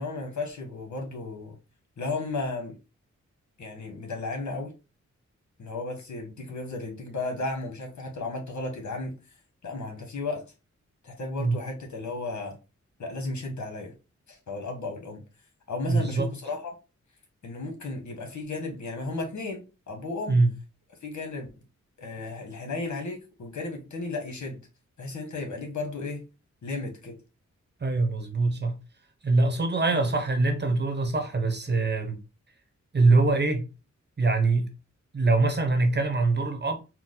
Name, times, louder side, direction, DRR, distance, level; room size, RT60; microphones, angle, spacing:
voice 1, 0.0-1.6 2.0-2.8 3.6-4.7 5.6-9.2 9.6-10.4 11.0-12.5 13.0-13.9 14.3-15.2 15.7-16.7 17.4-20.4 21.0-21.5 22.0-24.6 25.0-26.2 26.6-27.2 29.9-30.0, left 3 dB, 75° left, 1.5 m, -34 dB
voice 2, 15.9-16.3 20.3-20.5 27.8-28.7 29.2-32.2 32.9-33.7 34.2-34.7 35.1-36.8, right 3 dB, 35° right, 1.0 m, -23 dB
4.5 x 2.2 x 3.8 m
wide cardioid pair, 85°, 29 cm